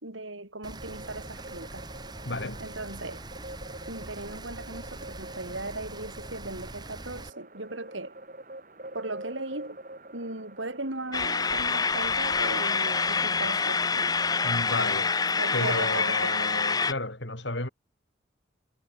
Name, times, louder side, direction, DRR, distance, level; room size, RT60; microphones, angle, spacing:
voice 1, 0.0-1.9 2.6-3.2 3.9-8.2 8.9-9.8 10.1-14.2 15.4-16.3, right 2 dB, 90° right, 6.3 m, -37 dB
Rain, 0.6-7.3, right 2 dB, 20° right, 2.5 m, -43 dB
sound 1, 0.8-16.6, right 1 dB, 45° right, 5.2 m, -46 dB
voice 2, 2.2-2.6 14.4-15.1 15.5-17.7, left 2 dB, 70° left, 5.7 m, -32 dB
sound 2, 11.1-16.9, left 4 dB, 20° left, 0.7 m, -26 dB
head